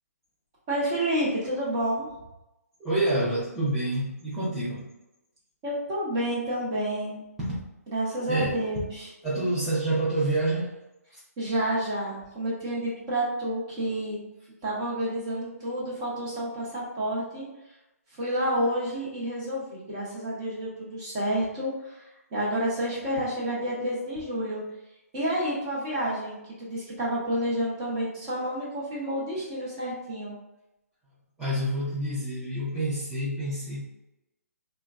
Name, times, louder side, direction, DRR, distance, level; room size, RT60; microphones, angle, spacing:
voice 1, 0.7-2.1 5.6-7.2 7.9-9.1 11.4-14.2 14.6-17.5 18.2-24.6 25.1-30.4, right 1 dB, 20° right, -6 dB, 0.9 m, -29 dB
voice 2, 2.8-4.9 7.5-7.6 8.3-8.5 9.2-10.8 31.4-33.8, right 1 dB, 5° right, -14 dB, 0.5 m, -27 dB
3.1 x 2.2 x 2.4 m, 0.94 s
hypercardioid pair, 165°, 9 cm